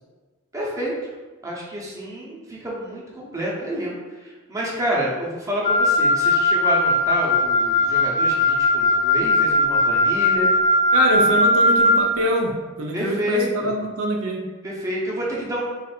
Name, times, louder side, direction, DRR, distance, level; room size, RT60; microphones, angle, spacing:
voice 1, 0.5-0.9 1.4-10.5 12.9-13.7 14.6-15.6, equal, 15° right, -5 dB, 0.8 m, -28 dB
Wind instrument woodwind instrument, 5.6-12.1, left 2 dB, 40° left, 0.5 m, -19 dB
voice 2, 10.9-14.5, right 1 dB, 80° right, 1 dB, 0.5 m, -24 dB
2.6 x 2.4 x 4.1 m, 1.3 s
head